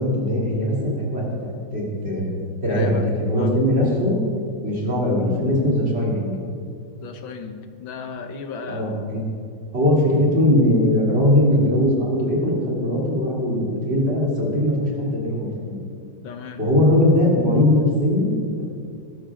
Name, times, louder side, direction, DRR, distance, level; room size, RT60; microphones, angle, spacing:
voice 1, 0.0-2.3 2.6-2.9 3.2-4.2 4.6-6.3 8.7-9.2 9.7-15.8 16.6-18.3, left 1 dB, 30° right, -4 dB, 3.6 m, -20 dB
voice 2, 2.7-3.1 3.3-3.6 7.0-9.1 16.2-16.6, left 5 dB, 85° left, 6 dB, 1.8 m, -34 dB
19.5 x 12.5 x 3.8 m, 2.3 s
omnidirectional pair, 2.1 m